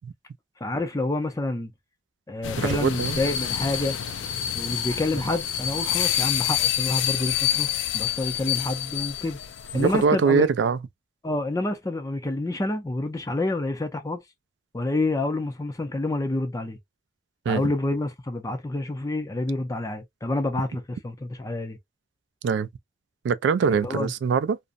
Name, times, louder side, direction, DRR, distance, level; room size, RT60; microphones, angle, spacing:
voice 1, 0.6-1.7 2.3-4.0 4.5-7.7 7.9-9.4 9.7-10.5 11.2-14.2 14.7-16.8 17.5-21.8 23.8-24.1, left 2 dB, 20° left, 0.4 m, -28 dB
sound 1, 2.4-10.0, left 11 dB, 85° left, 0.4 m, -27 dB
voice 2, 2.6-3.2 9.7-10.8 17.5-17.6 22.4-22.7 23.2-24.6, right 5 dB, 70° right, 0.3 m, -22 dB
2.5 x 2.0 x 2.5 m
head